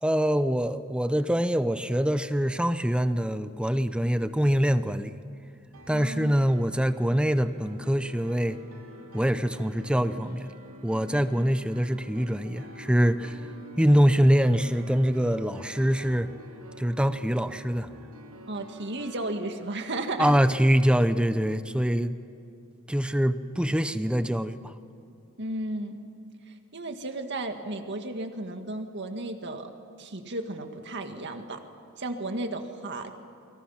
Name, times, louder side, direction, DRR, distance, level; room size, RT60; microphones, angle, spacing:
voice 1, 0.0-5.2 5.9-8.6 9.1-10.5 10.8-13.4 13.8-16.3 16.8-17.9 20.2-22.2 22.9-24.7, equal, 5° right, 11 dB, 0.7 m, -24 dB
Piano, 5.7-19.4, equal, 75° right, 2.7 m, -47 dB
voice 2, 5.9-6.3 18.5-20.3 25.4-26.0 26.5-29.7 30.0-31.6 32.0-33.1, right 2 dB, 55° right, 5 dB, 2.0 m, -34 dB
29.5 x 24.5 x 5.8 m, 2.7 s
head